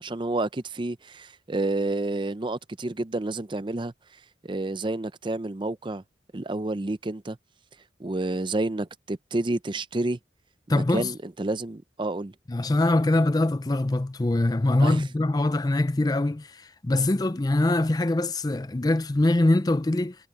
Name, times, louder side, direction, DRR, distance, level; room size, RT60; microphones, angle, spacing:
voice 1, 0.0-3.9 4.4-6.0 6.3-7.4 8.0-10.2 10.7-12.3 14.8-15.0, right 2 dB, 25° right, 0.6 m, -29 dB
voice 2, 10.7-11.1 12.5-20.2, left 2 dB, 20° left, 0.5 m, -23 dB
head